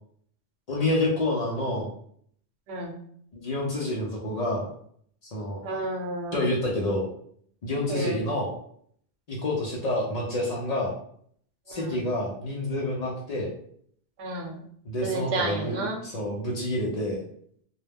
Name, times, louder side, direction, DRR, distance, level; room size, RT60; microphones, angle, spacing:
voice 1, 0.7-1.9 3.3-4.7 5.2-5.6 6.3-7.1 7.6-8.5 9.3-10.9 11.7-13.5 14.8-15.8 16.0-17.2, left 1 dB, 50° left, -2 dB, 0.5 m, -28 dB
voice 2, 5.6-6.4 7.9-8.3 11.7-12.0 14.2-14.6 15.0-16.0, right 2 dB, 85° right, 2 dB, 0.9 m, -31 dB
2.2 x 2.0 x 3.3 m, 0.64 s
omnidirectional pair, 1.1 m